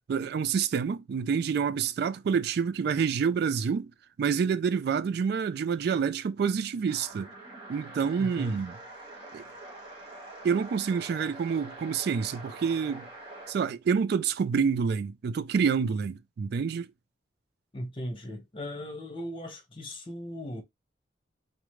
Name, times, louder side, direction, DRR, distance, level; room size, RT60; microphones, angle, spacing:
voice 1, 0.1-3.9 4.2-7.3 7.7-8.7 9.3-9.4 10.4-13.1 13.5-16.9, right 6 dB, 60° right, 0.3 m, -28 dB
sound 1, 6.9-13.6, right 2 dB, 30° right, 1.7 m, -45 dB
voice 2, 8.2-8.6 17.7-20.6, equal, 30° left, 1.0 m, -38 dB
4.9 x 2.1 x 3.1 m
head